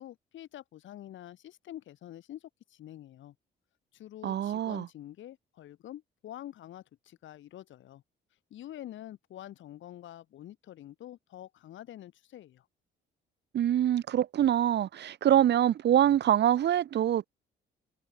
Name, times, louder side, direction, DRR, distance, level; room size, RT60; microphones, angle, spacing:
voice 1, 0.0-3.3 3.9-8.0 8.5-12.7, left 12 dB, 75° left, 1.8 m, -47 dB
voice 2, 4.2-4.9 13.5-17.3, right 11 dB, 60° right, 0.9 m, -25 dB
cardioid pair, 90°, 20 cm